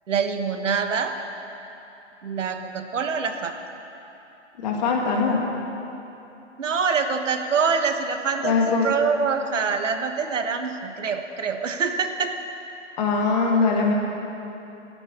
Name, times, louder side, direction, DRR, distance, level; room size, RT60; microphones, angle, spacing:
voice 1, 0.1-1.1 2.2-3.6 6.6-12.4, right 5 dB, 80° right, 6 dB, 1.4 m, -25 dB
voice 2, 4.6-5.4 8.4-8.9 13.0-13.9, left 4 dB, 35° left, 0 dB, 2.1 m, -21 dB
12.5 x 9.2 x 8.4 m, 2.9 s
hypercardioid pair, 160°, 37 cm